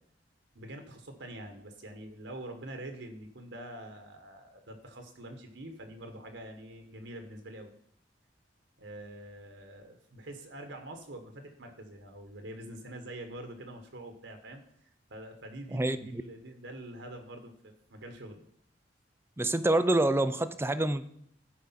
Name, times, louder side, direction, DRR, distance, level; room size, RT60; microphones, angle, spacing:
voice 1, 0.5-7.7 8.8-14.6 15.1-18.4, right 1 dB, 75° right, 5 dB, 1.4 m, -45 dB
voice 2, 15.7-16.2 19.4-21.1, right 2 dB, 15° right, 13 dB, 0.5 m, -27 dB
13.0 x 4.9 x 5.8 m, 0.68 s
head